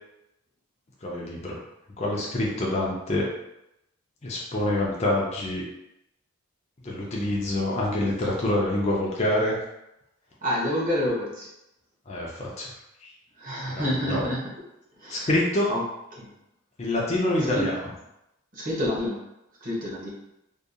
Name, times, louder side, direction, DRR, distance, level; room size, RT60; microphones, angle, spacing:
voice 1, 1.0-1.6 2.0-3.3 4.2-5.7 6.8-9.6 12.1-12.7 13.7-14.3 15.1-15.8 16.8-17.8, left 1 dB, 30° left, -4 dB, 0.4 m, -26 dB
voice 2, 10.4-11.5 13.4-14.4 15.0-15.3 15.7-15.8 16.2-16.3 17.5-17.7 18.5-19.2 19.6-20.1, equal, 35° right, -5 dB, 0.7 m, -28 dB
2.7 x 2.3 x 2.4 m, 0.86 s
head